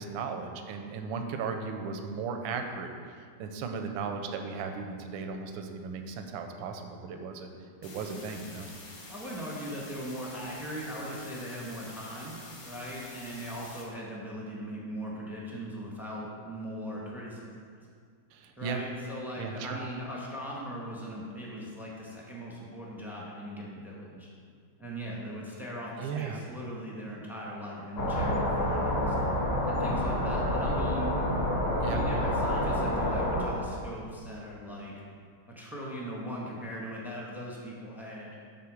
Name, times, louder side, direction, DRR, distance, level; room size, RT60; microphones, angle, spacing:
voice 1, 0.0-2.9 3.4-7.5 7.8-8.7 18.3-18.8 19.4-19.8 26.0-26.4 31.8-32.0, right 5 dB, 80° right, 5 dB, 1.4 m, -36 dB
sound 1, 7.8-13.8, left 2 dB, 60° left, 1.9 m, -48 dB
voice 2, 9.1-12.4 12.6-17.5 18.6-24.3 24.8-29.1 29.7-31.1 31.8-34.9 35.5-38.4, equal, ahead, -4 dB, 0.8 m, -39 dB
sound 2, 28.0-33.5, left 1 dB, 35° left, 1.3 m, -28 dB
8.6 x 3.9 x 6.2 m, 2.1 s
omnidirectional pair, 2.2 m